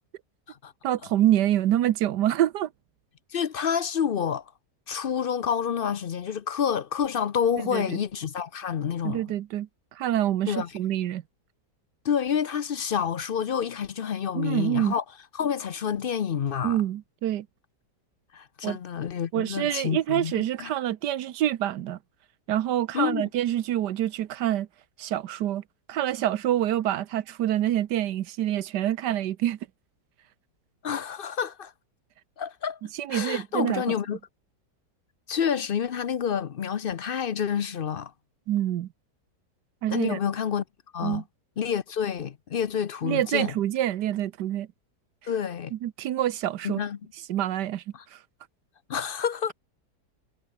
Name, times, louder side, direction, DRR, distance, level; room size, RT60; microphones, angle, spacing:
voice 1, 0.8-2.7 7.7-8.0 9.0-11.2 14.3-14.9 16.6-17.5 18.6-18.8 19.3-22.0 22.5-24.7 25.0-25.6 25.9-29.6 33.0-33.8 38.5-38.9 39.8-40.2 41.0-41.2 43.0-44.7 45.7-46.8 47.3-47.8 48.1-48.2, right 12 dB, 80° right, 1.4 m, -26 dB
voice 2, 3.3-4.5 4.9-9.2 10.5-10.7 12.0-15.0 15.3-16.8 18.3-20.7 22.9-23.3 30.8-31.7 32.4-32.8 33.1-34.2 35.3-38.1 39.9-40.6 40.9-41.2 41.6-43.5 45.3-45.7 46.6-47.0 47.9-48.0 48.9-49.5, left 8 dB, 55° left, 0.6 m, -28 dB
omnidirectional pair, 1.8 m